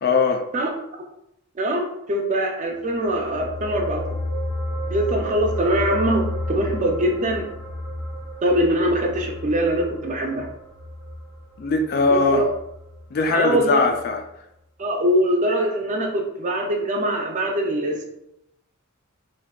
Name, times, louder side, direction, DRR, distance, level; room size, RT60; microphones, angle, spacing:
voice 1, 0.0-0.5 11.6-12.4 13.1-14.2, left 4 dB, 45° left, 4 dB, 0.4 m, -20 dB
voice 2, 1.6-4.2 4.9-7.5 8.4-10.5 12.1-12.5 13.3-13.9 14.8-18.0, right 1 dB, 35° right, 2 dB, 0.5 m, -23 dB
sound 1, 2.8-13.6 13.9-14.1, left 1 dB, 5° left, 0.7 m, -32 dB
3.6 x 2.7 x 2.2 m, 0.82 s
head